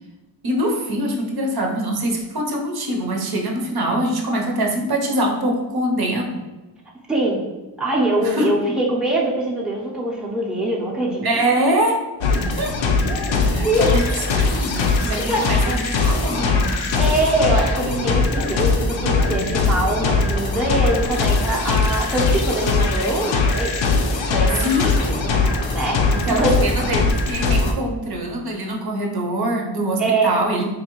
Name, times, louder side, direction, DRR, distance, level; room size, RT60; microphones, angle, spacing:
voice 1, 0.4-6.4 8.2-8.5 11.2-12.0 12.6-12.8 13.4-14.1 14.3-17.0 24.5-25.2 26.1-30.7, right 1 dB, 55° right, 0 dB, 0.7 m, -24 dB
voice 2, 7.1-7.4 7.8-11.3 13.6-13.9 15.3-15.6 16.9-23.7 24.3-24.8 25.0-25.2 25.7-26.6 30.0-30.3, right 1 dB, ahead, -4 dB, 0.6 m, -23 dB
sound 1, 12.2-27.7, left 3 dB, 75° left, 0.6 m, -20 dB
3.9 x 2.6 x 2.9 m, 1.1 s
cardioid pair, 90°, 46 cm